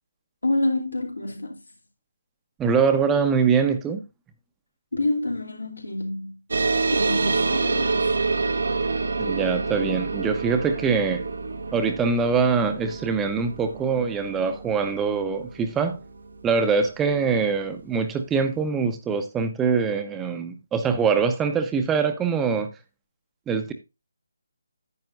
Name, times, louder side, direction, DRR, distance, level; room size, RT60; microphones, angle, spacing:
voice 1, 0.4-1.6 4.9-6.4 6.9-8.1, left 2 dB, 90° left, 2.9 m, -27 dB
voice 2, 2.6-4.0 9.2-11.2 11.7-16.0 16.4-22.7 23.5-23.7, right 5 dB, 10° right, 0.8 m, -23 dB
sound 1, 6.5-17.4, right 3 dB, 70° right, 1.2 m, -27 dB
10.5 x 8.6 x 2.6 m
figure-of-eight pair, 155°, 0 cm